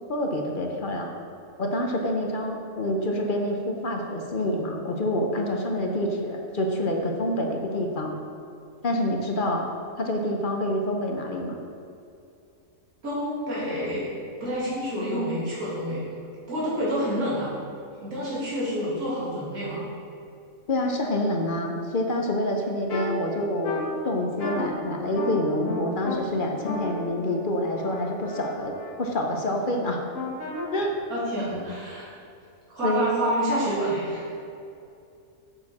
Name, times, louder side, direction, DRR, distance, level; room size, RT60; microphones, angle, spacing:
voice 1, 0.1-1.1 1.6-8.1 8.8-9.7 10.0-11.6 20.7-30.0 30.7-30.9 32.8-33.1, left 1 dB, 45° left, 2 dB, 0.7 m, -27 dB
voice 2, 13.0-14.1 14.4-16.0 16.5-17.6 18.0-19.8 31.1-32.1 32.7-34.3, equal, 85° right, -9 dB, 2.7 m, -28 dB
sound 1, 22.9-23.1 23.6-23.8 24.4-24.7 25.1-25.3 25.6-26.2 26.6-28.9 30.1-30.7, left 3 dB, 70° left, 1.7 m, -33 dB
7.0 x 6.9 x 4.2 m, 2.6 s
omnidirectional pair, 1.5 m